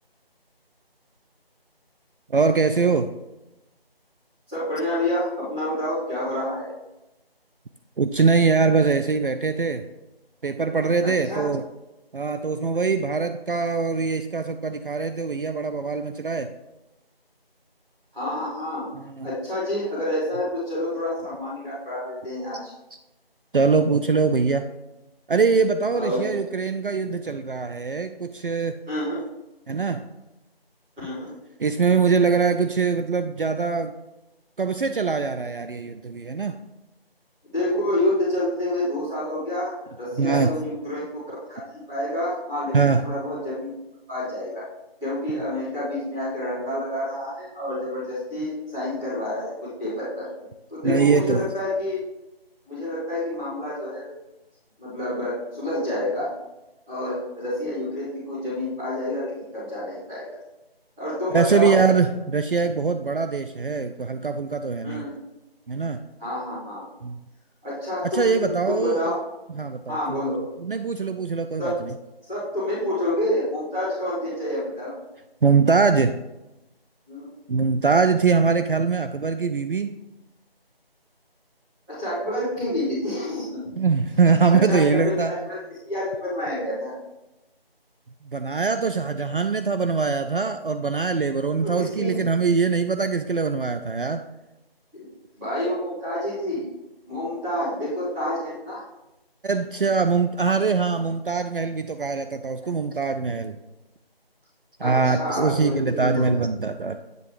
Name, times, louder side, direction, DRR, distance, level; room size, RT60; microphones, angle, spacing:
voice 1, 2.3-3.1 8.0-9.8 10.4-11.6 12.1-16.5 18.9-19.3 23.5-24.7 25.3-28.8 29.7-30.0 31.6-33.9 34.6-36.6 40.2-40.5 42.7-43.0 50.8-51.5 61.3-65.0 65.7-66.0 67.0-67.2 68.0-69.1 69.6-70.2 70.6-71.9 75.4-76.1 77.5-79.9 83.8-85.3 88.3-94.2 99.4-103.6 104.8-107.0, right 5 dB, 60° right, 9 dB, 0.5 m, -22 dB
voice 2, 4.5-6.7 11.0-11.5 18.1-18.8 19.2-22.7 25.9-26.2 28.9-29.2 31.0-31.3 37.5-43.7 44.1-44.7 45.0-50.3 50.7-52.0 52.7-54.1 54.8-56.3 56.9-60.2 61.0-61.7 64.8-65.1 66.2-66.8 67.6-69.2 69.9-70.4 71.6-71.8 72.3-74.9 77.1-77.3 81.9-83.6 84.5-85.6 85.9-86.9 91.6-92.1 94.9-95.1 95.4-96.7 97.1-98.8 102.6-102.7 104.8-106.2, left 1 dB, 5° right, -15 dB, 1.8 m, -28 dB
9.2 x 3.3 x 4.7 m, 0.97 s
figure-of-eight pair, 165°, 30 cm